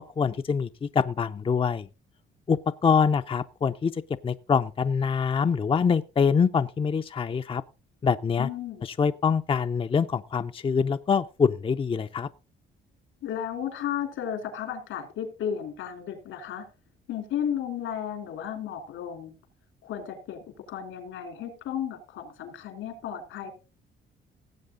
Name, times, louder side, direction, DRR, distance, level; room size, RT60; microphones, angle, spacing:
voice 1, 0.2-1.9 2.5-7.6 8.0-8.5 8.8-12.3, left 6 dB, 25° left, 0.5 m, -25 dB
voice 2, 8.4-8.9 13.2-16.7 17.1-19.3 19.8-23.5, left 9 dB, 85° left, 3.3 m, -34 dB
17.5 x 7.8 x 3.7 m
cardioid pair, 90°, 20 cm